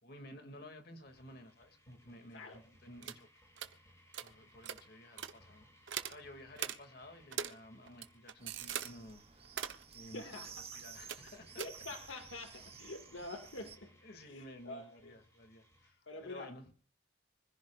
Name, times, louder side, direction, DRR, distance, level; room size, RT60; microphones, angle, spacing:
voice 1, 0.0-3.3 4.2-5.7 6.1-9.6 9.9-11.6 12.1-12.2 12.5-12.7 14.0-16.7, left 1 dB, 55° left, 5 dB, 2.5 m, -54 dB
sound 1, 1.1-15.9, equal, 15° left, 7.9 m, -65 dB
sound 2, 3.0-3.2 3.6-3.7 4.1-4.3 4.6-4.8 5.2-5.3 5.9-6.2 6.6-6.8 7.3-7.5 7.9-8.9 9.4-9.8 11.1-11.3 11.6-11.7, right 9 dB, 80° right, 1.1 m, -40 dB
sound 3, 8.4-13.8, right 7 dB, 30° right, 1.2 m, -53 dB
voice 2, 10.1-10.8 11.6-13.9 14.3-15.1 16.1-16.5, left 2 dB, 85° left, 5 dB, 2.1 m, -47 dB
25.0 x 15.5 x 2.5 m, 0.43 s
head